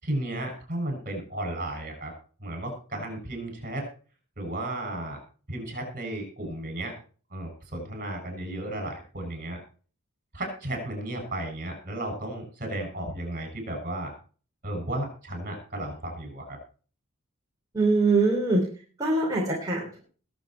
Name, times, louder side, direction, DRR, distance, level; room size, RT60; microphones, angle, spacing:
voice 1, 0.0-2.1 2.4-3.8 4.4-5.2 5.5-6.9 7.3-9.6 10.3-14.1 14.6-16.6, right 1 dB, 40° right, 4 dB, 6.8 m, -34 dB
voice 2, 17.7-18.6 19.0-20.0, right 3 dB, 15° right, -4 dB, 3.5 m, -23 dB
21.0 x 7.6 x 4.5 m, 0.40 s
head